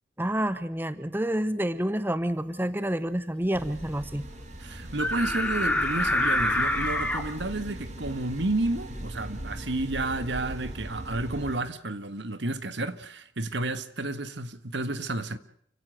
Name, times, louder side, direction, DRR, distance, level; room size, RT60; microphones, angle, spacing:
voice 1, 0.2-4.3, right 1 dB, 10° right, 0.9 m, -28 dB
sound 1, 3.5-11.6, right 1 dB, 40° right, 3.1 m, -39 dB
voice 2, 4.6-15.4, right 2 dB, 70° right, 1.7 m, -31 dB
sound 2, 5.0-7.2, left 1 dB, 10° left, 2.6 m, -26 dB
29.5 x 17.0 x 6.4 m
head